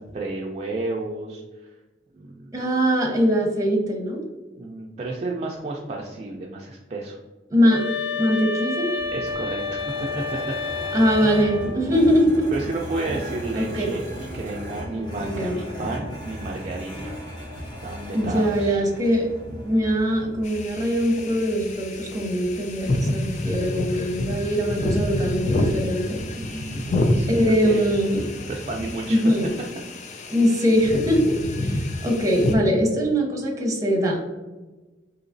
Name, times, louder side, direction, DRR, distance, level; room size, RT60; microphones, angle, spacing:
voice 1, 0.1-1.4 2.1-2.5 4.5-7.2 9.1-10.5 11.2-11.5 12.5-17.1 17.8-18.8 26.3-28.0 28.5-29.2, right 2 dB, 35° right, -1 dB, 0.4 m, -32 dB
voice 2, 2.5-4.2 7.5-7.8 8.1-8.9 10.9-12.5 13.6-13.9 15.2-15.6 18.1-19.3 19.7-26.2 27.3-28.2 29.1-29.5 30.3-34.2, equal, 20° right, 0 dB, 0.8 m, -22 dB
sound 1, 7.7-11.8, left 4 dB, 65° left, 0.8 m, -29 dB
sound 2, 9.0-28.8, equal, 25° left, 1.1 m, -38 dB
sound 3, 20.4-32.6, left 1 dB, 40° left, 0.4 m, -28 dB
3.8 x 2.8 x 2.6 m, 1.2 s
head